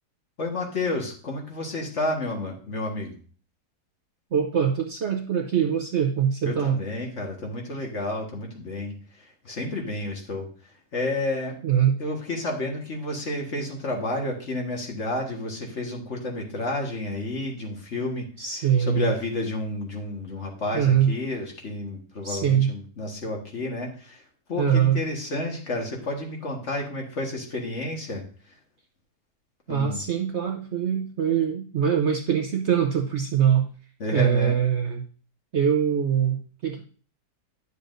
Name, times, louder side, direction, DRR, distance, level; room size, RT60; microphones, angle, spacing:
voice 1, 0.4-3.2 6.4-10.5 10.9-11.6 12.0-18.3 18.5-24.2 24.5-28.2 29.7-30.0 34.0-34.5, left 2 dB, 45° left, 1 dB, 1.7 m, -31 dB
voice 2, 4.3-6.8 11.6-12.0 18.4-19.1 20.7-21.1 22.2-22.7 24.6-25.0 29.7-33.7 34.1-35.0 35.5-36.8, right 8 dB, 55° right, 3 dB, 0.9 m, -23 dB
10.5 x 6.8 x 2.6 m, 0.40 s
omnidirectional pair, 1.7 m